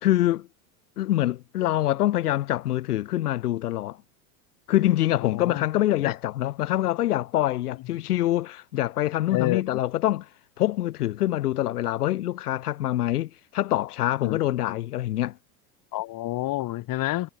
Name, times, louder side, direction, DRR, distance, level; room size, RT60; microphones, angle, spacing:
voice 1, 0.0-0.5 1.0-4.0 4.7-10.3 10.6-15.4, left 14 dB, 80° left, 2.9 m, -25 dB
voice 2, 5.2-5.7 6.0-6.2 9.3-9.8 14.2-14.4 14.7-14.8 15.9-17.3, left 16 dB, 45° left, 3.5 m, -29 dB
hypercardioid pair, 100°, 45 cm